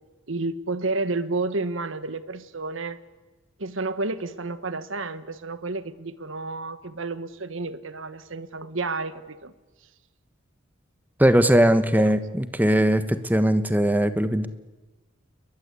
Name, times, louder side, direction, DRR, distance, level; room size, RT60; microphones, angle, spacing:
voice 1, 0.3-3.0 3.6-9.5 12.0-12.1, right 3 dB, 75° right, 13 dB, 1.4 m, -31 dB
voice 2, 11.2-14.5, right 1 dB, 10° right, 11 dB, 1.3 m, -20 dB
29.5 x 22.5 x 8.4 m, 1.2 s
head